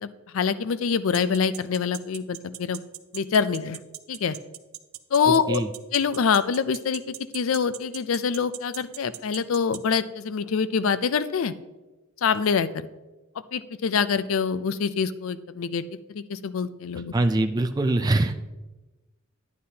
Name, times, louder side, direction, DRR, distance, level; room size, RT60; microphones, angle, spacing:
voice 1, 0.0-2.8 3.1-3.8 4.1-4.4 5.1-5.6 5.9-11.5 12.2-12.7 13.5-15.8 16.1-17.1, left 6 dB, 70° left, 14 dB, 0.4 m, -25 dB
sound 1, 1.1-9.8, right 15 dB, 85° right, 0.5 m, -38 dB
voice 2, 17.1-18.4, right 2 dB, 20° right, 7 dB, 0.3 m, -23 dB
10.0 x 9.5 x 2.8 m, 1.1 s
head